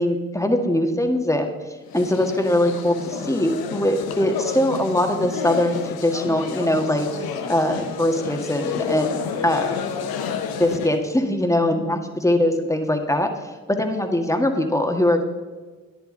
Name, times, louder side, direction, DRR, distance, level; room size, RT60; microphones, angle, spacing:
voice 1, 0.0-1.5 1.9-9.8 10.6-15.2, left 1 dB, 10° left, 4 dB, 1.7 m, -22 dB
sound 1, 1.9-11.0, left 7 dB, 75° left, 0.9 m, -30 dB
11.0 x 10.5 x 3.9 m, 1.3 s
hypercardioid pair, 40°, 37 cm